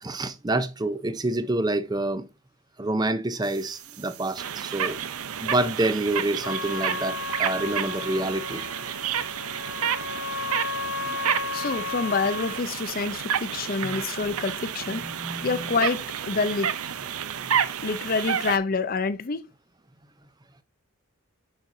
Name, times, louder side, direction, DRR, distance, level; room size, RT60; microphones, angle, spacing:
voice 1, 0.0-2.3 2.8-5.0 5.4-8.6 11.1-11.3 13.8-13.9 14.9-15.7, right 2 dB, 20° right, 0.5 m, -28 dB
sound 1, 3.4-18.6, right 8 dB, 80° right, 0.6 m, -31 dB
Trumpet, 6.4-12.6, left 4 dB, 70° left, 1.0 m, -34 dB
voice 2, 11.5-15.0 15.4-16.7 17.8-19.5, left 4 dB, 40° left, 0.5 m, -27 dB
6.6 x 6.0 x 2.6 m
head